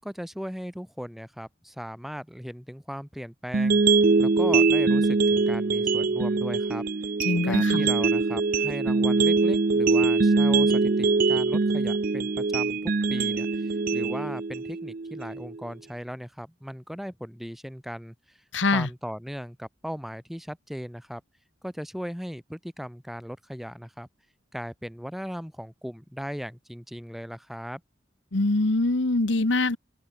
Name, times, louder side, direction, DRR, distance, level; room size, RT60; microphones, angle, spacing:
voice 1, 0.0-6.8 7.4-18.4 18.7-21.2 21.6-24.1 24.5-27.8, equal, ahead, 5.6 m, -38 dB
sound 1, 3.5-15.6, right 4 dB, 45° right, 0.6 m, -23 dB
voice 2, 7.2-7.9 18.5-18.9 28.3-29.8, left 2 dB, 70° left, 1.3 m, -24 dB
open air
head